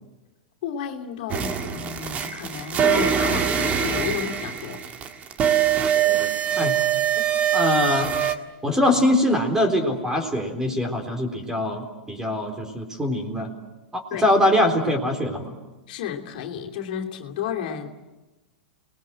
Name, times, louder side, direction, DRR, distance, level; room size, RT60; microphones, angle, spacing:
voice 1, 0.6-4.8 14.1-14.3 15.9-17.9, left 8 dB, 60° left, 1 dB, 2.9 m, -32 dB
sound 1, 1.3-8.3, right 9 dB, 30° right, 1.8 m, -23 dB
voice 2, 5.9-6.3 6.6-6.8 7.5-8.1 8.6-13.5 13.9-15.5, left 1 dB, 10° right, 5 dB, 4.0 m, -23 dB
29.0 x 20.5 x 7.7 m, 1.1 s
hypercardioid pair, 130°, 5 cm